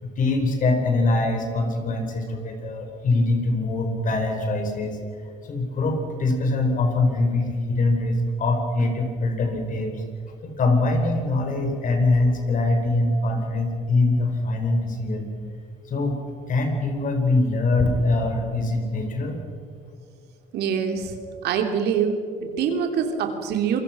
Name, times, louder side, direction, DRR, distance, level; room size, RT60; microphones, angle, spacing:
voice 1, 0.0-5.0 5.4-10.0 10.4-15.3 15.9-16.2 16.5-19.4, left 2 dB, 50° left, 5 dB, 4.7 m, -23 dB
voice 2, 20.5-21.2 21.4-23.8, right 7 dB, 75° right, 5 dB, 3.1 m, -24 dB
27.5 x 22.0 x 6.1 m, 2.2 s
cardioid pair, 110°, 17 cm